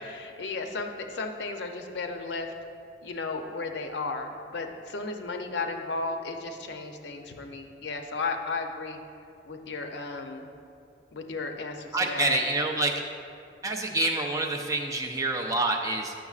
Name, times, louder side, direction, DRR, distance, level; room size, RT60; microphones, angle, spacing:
voice 1, 0.1-2.5 3.0-9.0 9.5-10.5 11.1-12.4, left 3 dB, 80° left, 5 dB, 0.5 m, -34 dB
voice 2, 11.9-12.9 13.6-16.1, right 2 dB, 20° right, 1 dB, 0.4 m, -27 dB
9.2 x 6.3 x 2.4 m, 2.4 s
head